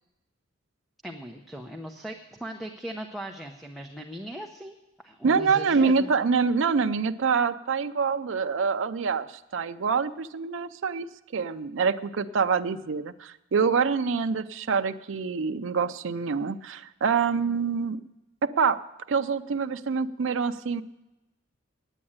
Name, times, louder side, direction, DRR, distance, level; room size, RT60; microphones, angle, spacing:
voice 1, 1.0-6.1, equal, ahead, 0 dB, 0.7 m, -39 dB
voice 2, 5.2-11.1 11.3-18.0 18.4-18.8 19.1-20.8, right 5 dB, 65° right, 9 dB, 0.5 m, -26 dB
9.9 x 8.6 x 8.6 m, 0.97 s
head